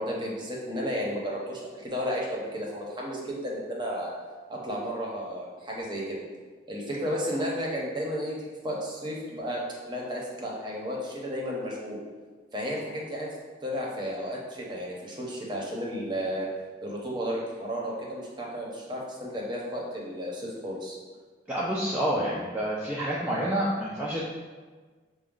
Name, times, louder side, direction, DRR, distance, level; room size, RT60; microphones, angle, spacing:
voice 1, 0.0-4.1 4.5-6.2 6.7-12.0 12.5-13.3 13.6-16.5 16.8-21.0, equal, 25° right, -3 dB, 0.8 m, -33 dB
voice 2, 21.5-24.2, right 1 dB, 10° right, -7 dB, 0.4 m, -28 dB
5.9 x 2.2 x 3.7 m, 1.4 s
head